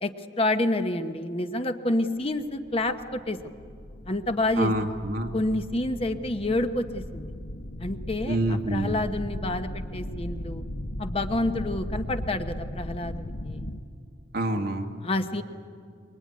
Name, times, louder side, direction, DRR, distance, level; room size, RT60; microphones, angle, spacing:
voice 1, 0.0-3.4 4.1-4.7 5.3-7.3 7.8-10.6 11.0-13.7 15.0-15.4, left 2 dB, 30° left, 8 dB, 1.0 m, -28 dB
sound 1, 2.4-13.8, left 1 dB, 60° left, 1.2 m, -37 dB
voice 2, 4.6-5.3 8.3-9.0 14.3-14.9, right 1 dB, 55° right, 3 dB, 1.9 m, -27 dB
23.5 x 23.0 x 9.6 m, 2.3 s
head